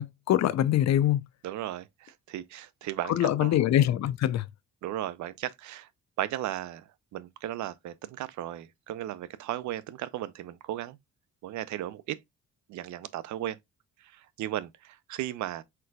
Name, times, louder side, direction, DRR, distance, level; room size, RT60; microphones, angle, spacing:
voice 1, 0.0-1.3 3.1-4.5, left 12 dB, 60° left, 0.5 m, -24 dB
voice 2, 1.4-3.6 4.8-5.9 6.2-11.0 11.4-12.2 12.7-13.6 14.0-15.6, right 13 dB, 70° right, 0.5 m, -36 dB
4.5 x 3.8 x 2.2 m
cardioid pair, 90°, 30 cm